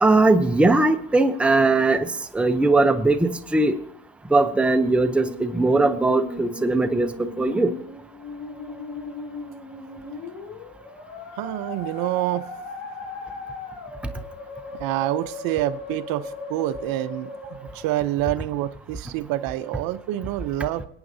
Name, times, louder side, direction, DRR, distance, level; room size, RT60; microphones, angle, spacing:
voice 1, 0.0-3.8 4.3-7.1 7.4-7.7, right 2 dB, 5° right, 8 dB, 0.7 m, -19 dB
Musical instrument, 4.9-17.9, left 3 dB, 75° left, 4.6 m, -37 dB
voice 2, 11.3-12.4 14.7-20.9, right 15 dB, 60° right, 14 dB, 0.7 m, -27 dB
23.0 x 8.7 x 2.7 m, 0.71 s
supercardioid pair, 105°, 40 cm